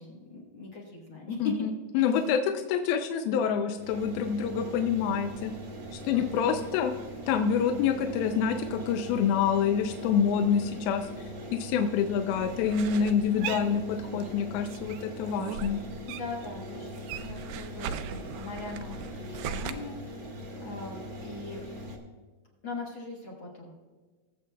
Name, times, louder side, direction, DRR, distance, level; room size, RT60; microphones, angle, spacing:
voice 1, 0.0-1.5 1.9-2.1 6.1-6.7 13.2-13.7 16.1-21.6 22.6-23.7, left 4 dB, 55° left, -2 dB, 1.4 m, -40 dB
voice 2, 1.4-5.5 5.9-6.9 7.3-11.1 11.5-15.8, left 7 dB, 85° left, 6 dB, 2.5 m, -27 dB
sound 1, 3.7-22.0, equal, 60° right, 1.3 m, -41 dB
sound 2, 12.3-14.4 14.7-16.5 16.8-19.7, right 8 dB, 85° right, 2.4 m, -38 dB
21.5 x 7.6 x 2.3 m, 1.4 s
omnidirectional pair, 4.2 m